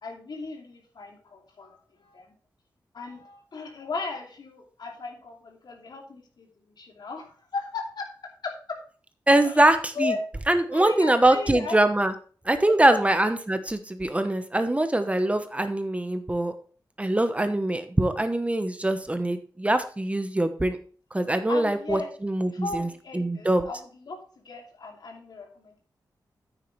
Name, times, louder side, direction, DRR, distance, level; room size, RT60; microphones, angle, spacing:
voice 1, 0.0-2.3 2.9-8.1 8.4-8.8 9.4-10.2 10.5-11.8 12.7-13.0 21.5-22.1 22.5-24.2 24.4-25.8, left 4 dB, 70° left, 2 dB, 2.8 m, -36 dB
voice 2, 9.3-10.1 10.5-12.1 12.4-16.5 17.0-20.8 21.1-22.9 23.1-23.7, right 1 dB, 15° right, 9 dB, 1.1 m, -23 dB
9.5 x 9.1 x 3.3 m, 0.42 s
wide cardioid pair, 80°, 7 cm